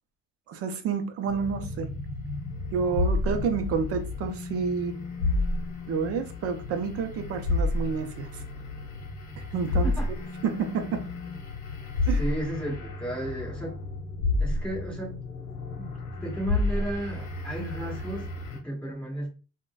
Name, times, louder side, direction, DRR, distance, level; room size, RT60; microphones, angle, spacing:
voice 1, 0.5-1.9 2.7-5.0 5.9-8.4 9.5-9.9 10.4-11.0 12.1-12.2, right 6 dB, 45° right, 0.5 m, -29 dB
sound 1, 1.3-18.6, left 2 dB, 55° left, 0.9 m, -31 dB
voice 2, 12.2-13.8 14.4-15.2 15.8-19.3, right 1 dB, 5° left, 1.4 m, -34 dB
3.7 x 2.2 x 2.2 m
cardioid pair, 150°, 35 cm